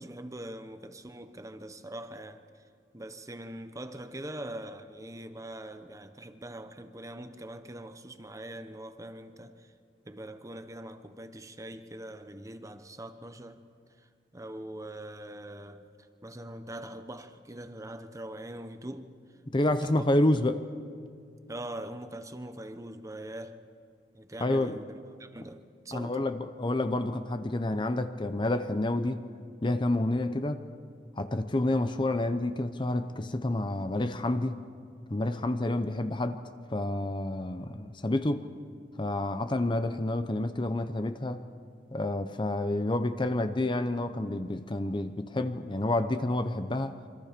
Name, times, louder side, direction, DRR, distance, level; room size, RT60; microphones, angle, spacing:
voice 1, 0.0-2.4 2.9-9.7 10.0-13.6 14.0-19.1 19.7-20.1 20.4-20.5 21.5-23.6 24.1-26.3, right 1 dB, 20° right, 1.0 m, -42 dB
voice 2, 19.5-20.6 24.4-24.8 25.9-29.2 29.6-30.6 31.2-34.6 35.1-36.4 36.7-38.5 39.0-41.4 41.9-47.0, left 1 dB, 25° left, 0.8 m, -29 dB
27.0 x 25.0 x 5.2 m
head